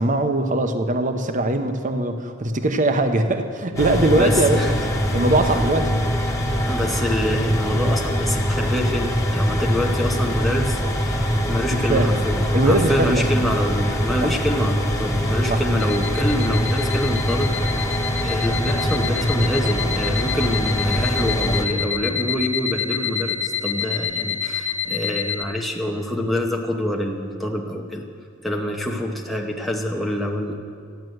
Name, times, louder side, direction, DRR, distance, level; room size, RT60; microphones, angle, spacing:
voice 1, 0.0-5.9 11.9-12.2 12.5-13.3 14.2-14.3 15.5-15.6, right 2 dB, 40° right, 7 dB, 0.9 m, -21 dB
sound 1, 3.8-21.7, equal, 15° left, 1.4 m, -23 dB
voice 2, 4.2-4.8 5.4-5.5 6.7-11.2 11.5-17.9 18.2-28.1 28.4-30.5, left 1 dB, ahead, 0 dB, 0.9 m, -26 dB
sound 2, 15.8-25.4, left 8 dB, 65° left, 1.3 m, -28 dB
14.0 x 10.5 x 7.9 m, 2.1 s
head